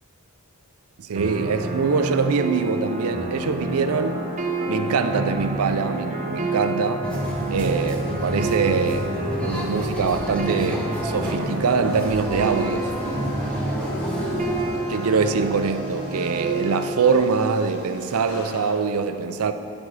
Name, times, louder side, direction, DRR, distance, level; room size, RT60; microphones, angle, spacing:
voice 1, 1.0-4.3 4.7-7.1 7.5-13.0 14.9-19.5, right 5 dB, 85° right, 0.5 m, -23 dB
sound 1, 1.1-17.1, right 2 dB, 35° right, 0.8 m, -29 dB
sound 2, 7.0-14.7, equal, 5° left, 0.9 m, -29 dB
sound 3, 11.9-18.8, left 2 dB, 80° left, 0.9 m, -45 dB
10.5 x 8.1 x 3.3 m
head